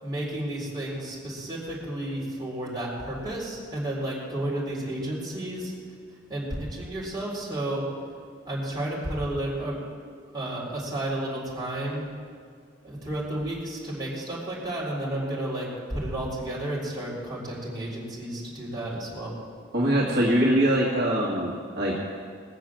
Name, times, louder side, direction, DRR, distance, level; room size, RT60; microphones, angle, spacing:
voice 1, 0.0-5.7 6.3-7.9 8.4-9.8 10.3-12.1 12.8-19.3, right 1 dB, 20° right, -6 dB, 4.1 m, -32 dB
voice 2, 19.7-22.2, right 1 dB, 55° right, -5 dB, 2.0 m, -23 dB
20.0 x 7.1 x 7.5 m, 2.1 s
head